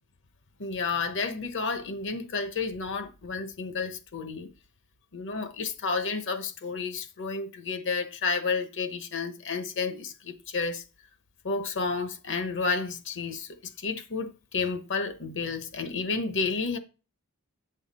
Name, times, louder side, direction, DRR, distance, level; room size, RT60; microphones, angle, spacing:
voice 1, 0.6-4.5 5.1-10.8 11.4-13.5 13.8-16.8, left 4 dB, 55° left, 1.0 m, -31 dB
8.7 x 5.7 x 4.2 m
head